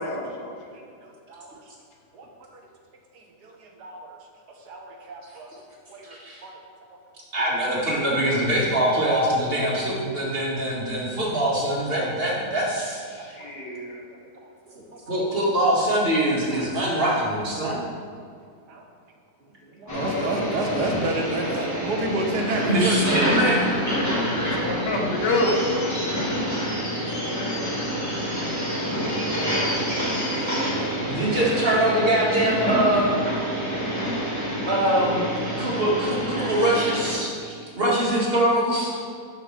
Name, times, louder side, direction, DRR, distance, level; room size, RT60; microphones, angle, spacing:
voice 1, 0.0-0.6 13.1-14.0 17.1-17.2 19.9-21.0 24.6-25.6, left 2 dB, 85° left, 0 dB, 1.9 m, -29 dB
voice 2, 0.7-1.6 2.1-2.3 2.5-2.6 3.1-4.2 4.7-5.5 5.9-6.5 6.9-7.0 8.1-8.4 13.2-13.5 14.4-15.4 16.5-16.7 18.7-18.8 19.8-23.1 25.2-25.5 28.4-28.6 29.3-29.5 30.0-30.1 30.6-31.2 31.7-31.8 35.5-35.8 37.2-37.3, right 2 dB, 70° right, 2 dB, 1.5 m, -32 dB
voice 3, 7.3-13.0 15.1-17.8 22.7-23.6 31.1-33.2 34.7-35.3 35.6-39.0, right 1 dB, 35° right, -5 dB, 2.1 m, -23 dB
sound 1, 19.9-37.1, equal, 10° left, 1.7 m, -27 dB
12.5 x 5.8 x 3.3 m, 2.3 s
omnidirectional pair, 1.8 m